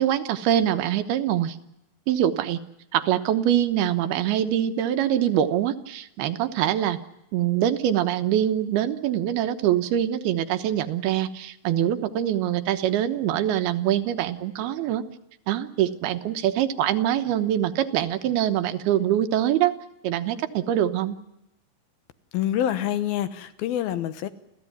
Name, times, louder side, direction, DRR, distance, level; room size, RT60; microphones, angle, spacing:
voice 1, 0.0-1.6 2.1-2.6 2.9-7.0 7.3-15.0 15.5-19.7 20.0-21.2, right 11 dB, 85° right, 9 dB, 3.1 m, -24 dB
voice 2, 22.3-24.3, left 11 dB, 80° left, 11 dB, 3.0 m, -26 dB
29.0 x 15.0 x 9.5 m, 0.87 s
omnidirectional pair, 4.4 m